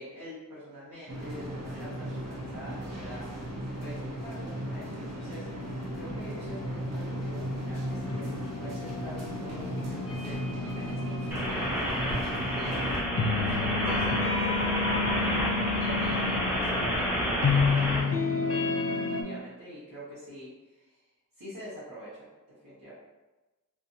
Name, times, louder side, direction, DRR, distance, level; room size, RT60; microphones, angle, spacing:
voice 1, 0.0-3.3 3.8-5.5 5.9-12.9 13.3-15.4 15.7-18.7 19.0-21.0 21.3-22.3 22.6-22.9, equal, 70° right, -11 dB, 0.9 m, -45 dB
sound 1, 1.1-13.0, equal, 50° right, 0.6 m, -36 dB
sound 2, 5.0-19.2, left 4 dB, 45° left, 0.4 m, -32 dB
sound 3, 11.3-18.0, equal, 5° right, 0.6 m, -30 dB
2.5 x 2.4 x 2.7 m, 1.1 s
wide cardioid pair, 50°, 33 cm